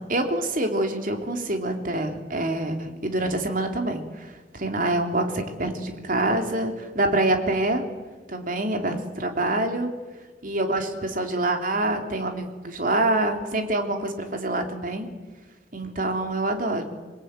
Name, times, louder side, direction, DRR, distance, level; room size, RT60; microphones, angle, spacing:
voice 1, 0.0-7.8 8.3-9.9 10.4-15.1 15.7-16.8, right 1 dB, 45° right, 4 dB, 3.4 m, -26 dB
27.5 x 22.0 x 9.2 m, 1.3 s
head